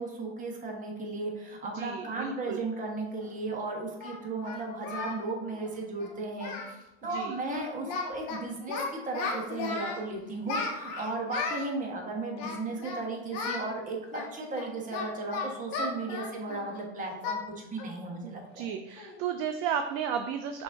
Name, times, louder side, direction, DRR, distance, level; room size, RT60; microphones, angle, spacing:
voice 1, 0.0-18.8, right 3 dB, 20° right, 0 dB, 1.1 m, -35 dB
voice 2, 1.7-2.6 7.1-7.4 18.2-20.6, right 8 dB, 45° right, 6 dB, 0.4 m, -33 dB
Singing, 3.2-3.3 4.0-5.2 5.5-5.7 6.0-6.1 6.4-6.7 7.0-7.2 7.5-8.4 8.7-10.0 10.5-11.7 12.3-13.0 13.3-13.6 14.1-16.8 17.2-17.4 17.8-18.0 18.4-18.5 19.0-19.2, left 4 dB, 50° left, 1.1 m, -35 dB
5.9 x 2.6 x 3.4 m, 0.94 s
hypercardioid pair, 110°, 35 cm